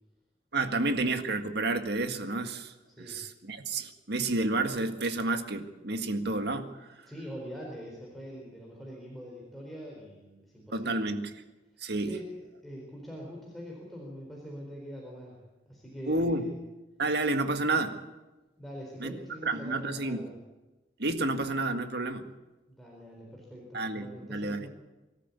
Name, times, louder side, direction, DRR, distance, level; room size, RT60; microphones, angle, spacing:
voice 1, 0.5-2.7 3.1-6.7 10.7-11.3 11.8-12.1 16.1-16.5 17.0-17.9 19.0-19.1 19.4-20.2 21.0-22.2 23.7-24.7, right 2 dB, 65° right, 7 dB, 1.8 m, -30 dB
voice 2, 2.9-3.2 7.0-11.1 12.0-16.6 18.6-20.4 22.7-24.7, equal, ahead, -3 dB, 4.1 m, -44 dB
24.5 x 13.5 x 8.4 m, 1.1 s
head